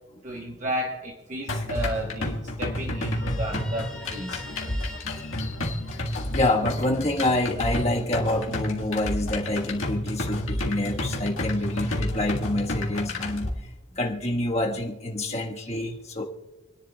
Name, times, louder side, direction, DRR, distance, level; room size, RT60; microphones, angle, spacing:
voice 1, 0.2-4.4 15.3-15.4, equal, 35° right, 0 dB, 1.1 m, -33 dB
sound 1, 1.5-13.5, left 1 dB, 80° left, 1.7 m, -30 dB
Guitar, 2.9-6.5, left 1 dB, 5° left, 1.2 m, -45 dB
voice 2, 5.1-5.4 6.3-13.5 14.0-16.2, left 1 dB, 30° left, 0 dB, 1.4 m, -27 dB
28.5 x 10.5 x 2.3 m, 1.1 s
head